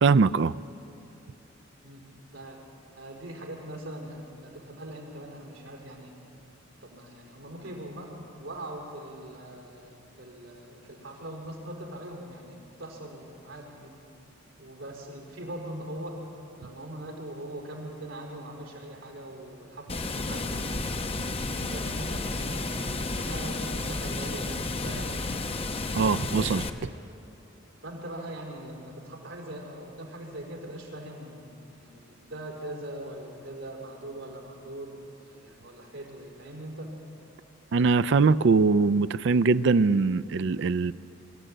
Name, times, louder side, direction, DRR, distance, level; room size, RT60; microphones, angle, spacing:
voice 1, 0.0-0.5 25.9-26.6 37.7-40.9, right 4 dB, 60° right, 16 dB, 0.4 m, -22 dB
voice 2, 1.8-2.6 3.0-6.2 6.7-14.0 14.6-16.2 16.6-21.2 21.6-25.2 27.8-36.9, right 1 dB, 75° right, -1 dB, 4.5 m, -41 dB
Water, 19.9-26.7, left 2 dB, 30° left, 0.9 m, -32 dB
23.5 x 13.5 x 9.0 m, 2.8 s
head